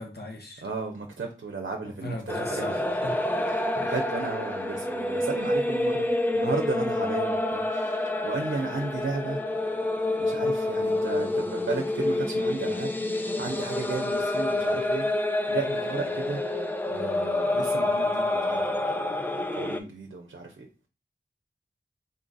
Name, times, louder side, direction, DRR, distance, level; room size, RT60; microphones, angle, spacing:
voice 1, 0.0-0.7 1.8-3.2, left 1 dB, 55° left, 1.1 m, -38 dB
voice 2, 0.6-2.6 3.5-6.1 6.3-8.0 8.2-9.4 10.2-12.9 13.4-15.0 15.5-16.4 16.9-18.6 18.9-20.7, right 4 dB, 70° right, 0.6 m, -34 dB
sound 1, 2.3-19.8, left 2 dB, 10° left, 0.5 m, -28 dB
3.8 x 2.4 x 3.9 m
wide cardioid pair, 40°, 20 cm